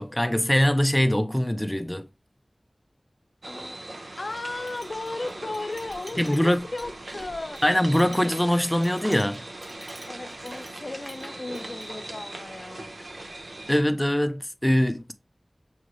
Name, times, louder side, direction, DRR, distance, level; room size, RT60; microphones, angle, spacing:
voice 1, 0.0-2.1 6.2-6.6 7.6-9.4 13.7-15.1, equal, 15° left, 0.6 m, -23 dB
sound 1, 3.4-13.8, right 2 dB, 85° right, 0.7 m, -40 dB
voice 2, 3.5-7.6 10.1-13.0, left 2 dB, 75° left, 0.6 m, -36 dB
Chink clink, 4.3-11.3 11.5-11.9, equal, 40° right, 2.1 m, -49 dB
6.2 x 2.5 x 3.1 m
wide cardioid pair, 45°, 0 cm